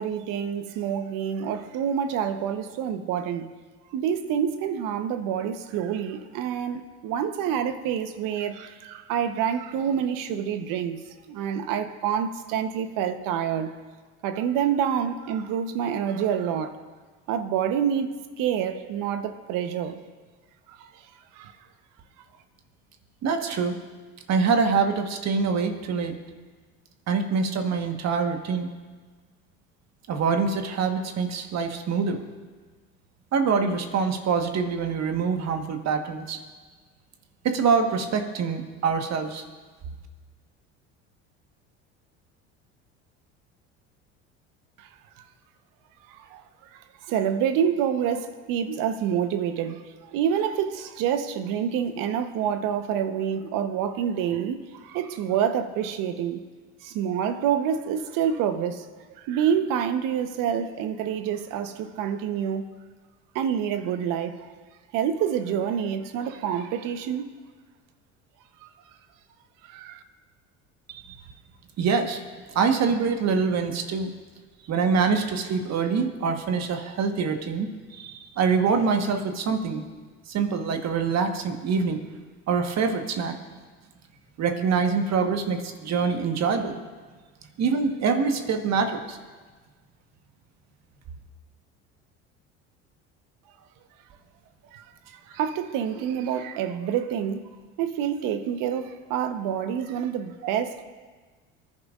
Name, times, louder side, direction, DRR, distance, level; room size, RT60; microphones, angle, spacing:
voice 1, 0.0-3.5 3.9-11.0 11.3-13.7 14.2-16.8 17.3-20.0 20.7-21.5 44.8-44.9 45.2-45.3 46.1-46.4 46.7-56.4 56.8-62.7 63.3-64.5 64.9-67.3 68.6-68.7 69.6-70.0 94.7-97.5 97.8-100.8, right 8 dB, 65° right, 1.0 m, -27 dB
voice 2, 23.2-23.8 24.3-26.1 27.1-28.7 30.1-32.2 33.3-36.4 37.4-39.4 70.9-71.2 71.8-72.2 72.5-74.1 74.7-79.8 80.3-82.0 82.5-83.4 84.4-86.8 87.6-89.2, right 5 dB, 50° right, 1.4 m, -25 dB
24.0 x 10.5 x 2.5 m
hypercardioid pair, 75°, 35 cm